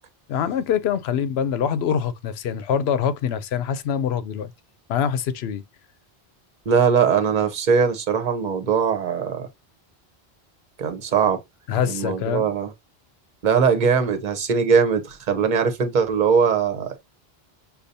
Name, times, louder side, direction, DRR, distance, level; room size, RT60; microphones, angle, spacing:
voice 1, 0.3-4.5 4.9-5.6 11.7-12.5, left 8 dB, 80° left, 0.8 m, -24 dB
voice 2, 6.7-9.5 10.8-11.4 11.9-12.7 13.4-17.0, right 6 dB, 50° right, 0.9 m, -20 dB
6.6 x 2.3 x 2.6 m
omnidirectional pair, 1.0 m